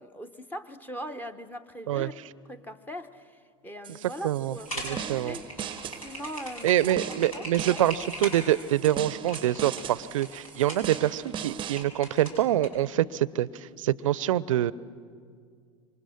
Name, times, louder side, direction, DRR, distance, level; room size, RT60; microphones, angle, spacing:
voice 1, 0.0-2.1 2.5-5.5 6.0-6.9 7.3-7.8, equal, 10° left, 9 dB, 1.0 m, -40 dB
sound 1, 3.8-11.8, right 9 dB, 30° right, 0.7 m, -39 dB
voice 2, 4.2-4.5 4.8-5.4 6.6-13.5 13.8-14.7, right 13 dB, 70° right, 20 dB, 0.6 m, -25 dB
sound 2, 4.6-12.7, equal, 85° left, 6.9 m, -40 dB
26.5 x 24.5 x 6.5 m, 2.1 s
hypercardioid pair, 85°, 17 cm